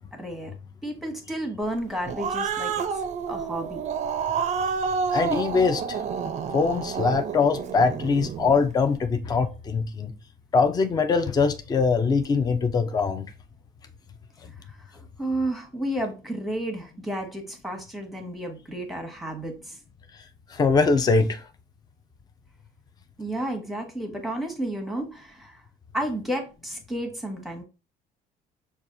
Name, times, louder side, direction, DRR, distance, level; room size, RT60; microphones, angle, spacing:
voice 1, 0.1-0.5 0.8-2.9 3.3-3.8 14.9-19.8 23.2-25.6 25.9-27.6, right 1 dB, ahead, 1.0 m, -32 dB
Growling, 1.8-8.6, right 6 dB, 45° right, 0.4 m, -29 dB
voice 2, 5.1-6.0 6.5-10.1 10.5-13.3 20.5-21.4, left 4 dB, 25° left, 0.4 m, -22 dB
5.8 x 2.3 x 2.6 m
cardioid pair, 110°, 17 cm